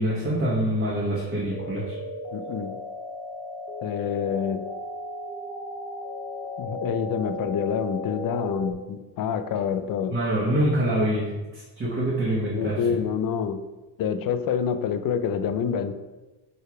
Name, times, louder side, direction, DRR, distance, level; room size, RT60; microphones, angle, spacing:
voice 1, 0.0-1.9 10.1-12.8, right 1 dB, 25° right, -7 dB, 1.3 m, -25 dB
sound 1, 1.5-8.7, left 1 dB, 5° left, 2.0 m, -35 dB
voice 2, 2.3-2.8 3.8-4.7 6.6-10.2 12.4-13.6 14.0-15.9, left 7 dB, 50° left, 10 dB, 0.5 m, -27 dB
5.0 x 4.6 x 4.7 m, 1.1 s
cardioid pair, 170°, 44 cm